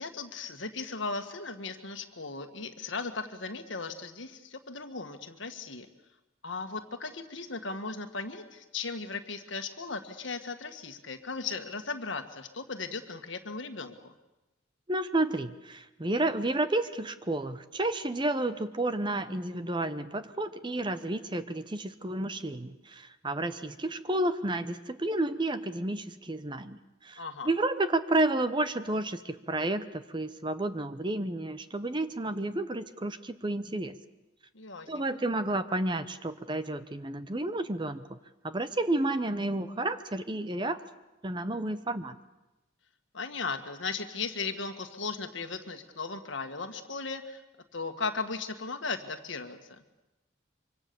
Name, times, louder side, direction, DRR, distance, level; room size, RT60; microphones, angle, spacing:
voice 1, 0.0-5.9 6.4-14.1 27.2-27.5 34.5-35.0 43.1-47.4 47.7-49.8, left 4 dB, 65° left, 7 dB, 1.8 m, -37 dB
voice 2, 14.9-33.9 34.9-38.2 38.4-40.8 41.2-42.2, right 2 dB, 25° right, 12 dB, 0.8 m, -31 dB
25.0 x 25.0 x 7.0 m, 0.99 s
head